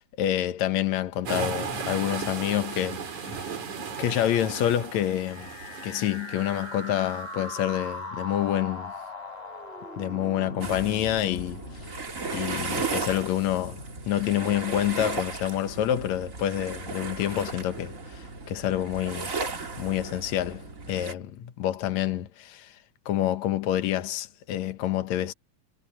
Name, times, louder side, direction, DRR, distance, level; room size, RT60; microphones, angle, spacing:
voice 1, 0.0-3.5 4.0-5.5 5.8-8.9 10.0-11.6 12.3-19.3 19.8-22.8 23.1-25.3, left 11 dB, 65° left, 2.4 m, -28 dB
sound 1, 1.3-7.1, right 5 dB, 65° right, 4.4 m, -35 dB
sound 2, 5.1-13.1, left 1 dB, 15° left, 4.7 m, -39 dB
sound 3, 10.6-21.1, right 4 dB, 30° right, 2.1 m, -35 dB
omnidirectional pair, 3.7 m